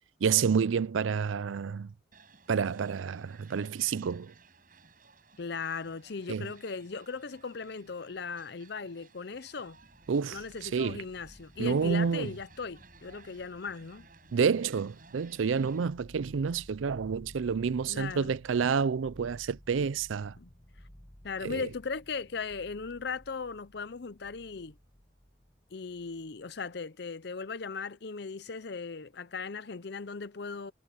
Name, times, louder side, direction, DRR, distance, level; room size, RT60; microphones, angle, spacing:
voice 1, 0.2-1.9 2.5-4.3 6.3-6.5 10.1-11.0 11.6-12.3 14.3-20.4 21.4-21.7, right 6 dB, 80° right, 0.4 m, -29 dB
sound 1, 2.1-15.9, right 4 dB, 45° right, 6.2 m, -59 dB
voice 2, 5.4-9.8 10.3-14.1 17.9-18.3 20.4-20.5 21.2-24.7 25.7-30.7, left 4 dB, 55° left, 0.6 m, -38 dB
sound 2, 9.3-26.7, equal, 20° left, 1.9 m, -56 dB
head